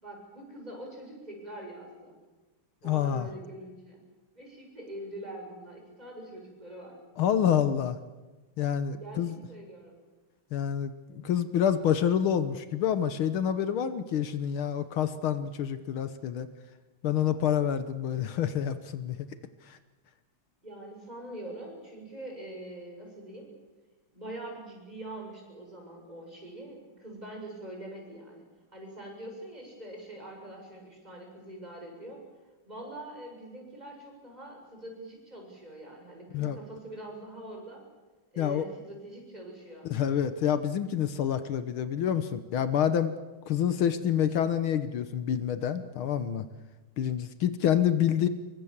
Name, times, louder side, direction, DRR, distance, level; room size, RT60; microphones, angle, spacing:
voice 1, 0.0-2.2 2.8-4.0 4.3-7.0 9.0-10.0 20.6-23.5 24.1-28.4 28.7-32.2 32.7-37.8 38.3-39.9, right 1 dB, 20° right, 0 dB, 7.2 m, -44 dB
voice 2, 2.8-3.3 7.2-8.0 8.6-9.4 10.5-16.5 17.0-19.2 19.7-19.8 36.3-36.6 38.4-38.7 39.9-43.2 43.5-46.5 47.0-48.3, left 9 dB, 75° left, 11 dB, 1.9 m, -27 dB
26.5 x 23.5 x 7.4 m, 1.2 s
omnidirectional pair, 2.3 m